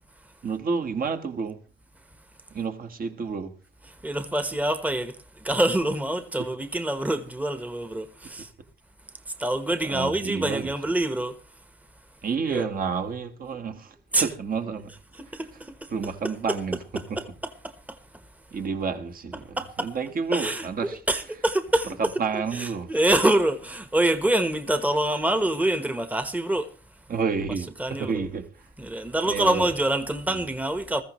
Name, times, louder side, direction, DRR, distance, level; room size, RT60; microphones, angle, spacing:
voice 1, 0.4-1.6 2.5-3.5 6.4-6.5 9.8-10.7 12.2-14.9 15.3-15.4 15.9-16.8 17.1-17.2 18.5-21.0 22.0-22.9 27.1-28.7 29.3-29.7, right 5 dB, 45° right, 1.6 m, -30 dB
voice 2, 3.9-8.5 9.3-11.4 12.5-12.7 13.5-13.6 14.1-14.3 15.2-15.9 16.5-16.6 16.9-17.3 17.6-18.0 19.6-19.9 20.3-22.0 22.5-26.7 27.8-28.2 28.8-31.0, right 1 dB, 5° right, 1.2 m, -26 dB
20.5 x 14.0 x 3.1 m
cardioid pair, 90°, 20 cm